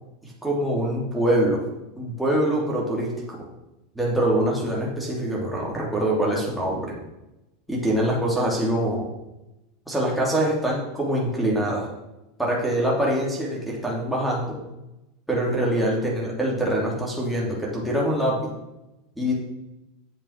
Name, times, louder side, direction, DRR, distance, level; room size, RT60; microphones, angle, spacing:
voice 1, 0.4-1.6 2.0-3.4 3.9-6.9 7.7-9.1 9.9-11.8 12.4-14.5 15.3-18.4 19.2-19.3, right 1 dB, ahead, -5 dB, 2.9 m, -24 dB
8.5 x 7.1 x 5.8 m, 0.95 s
supercardioid pair, 115°, 0 cm